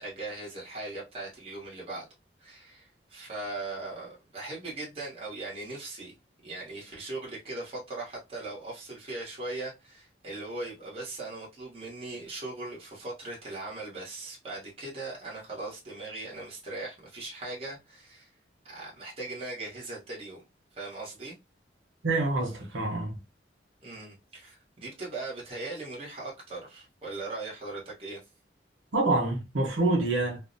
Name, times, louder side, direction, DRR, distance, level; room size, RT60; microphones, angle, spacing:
voice 1, 0.0-2.1 2.4-6.1 6.4-18.3 18.6-20.4 20.7-21.4 23.8-28.2, right 2 dB, 30° right, 0.9 m, -39 dB
voice 2, 22.0-23.2 28.9-30.4, right 2 dB, 90° right, 0.9 m, -26 dB
2.5 x 2.0 x 2.5 m
head